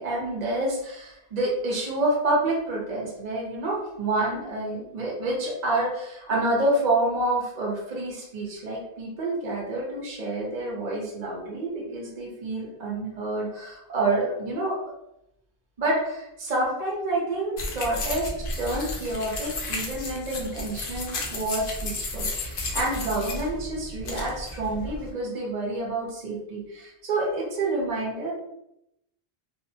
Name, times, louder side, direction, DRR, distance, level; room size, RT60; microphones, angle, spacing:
voice 1, 0.0-14.8 15.8-18.3 18.6-28.3, right 2 dB, 45° right, -3 dB, 0.8 m, -28 dB
sound 1, 17.6-25.1, left 2 dB, 65° left, 0.7 m, -33 dB
2.7 x 2.0 x 2.6 m, 0.81 s
omnidirectional pair, 1.1 m